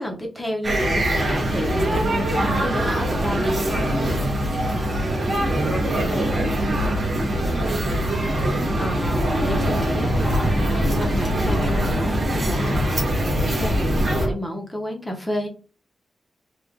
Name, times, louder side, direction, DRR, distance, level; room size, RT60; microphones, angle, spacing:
voice 1, 0.0-3.4 8.8-15.5, equal, 10° left, 2 dB, 0.8 m, -31 dB
sound 1, 0.6-14.3, right 1 dB, 30° right, 1.2 m, -23 dB
voice 2, 4.6-7.6, right 1 dB, 85° right, 3 dB, 0.7 m, -35 dB
sound 2, 9.2-14.3, left 1 dB, 60° left, 0.6 m, -26 dB
3.4 x 2.2 x 3.5 m, 0.33 s
wide cardioid pair, 180°, 0 cm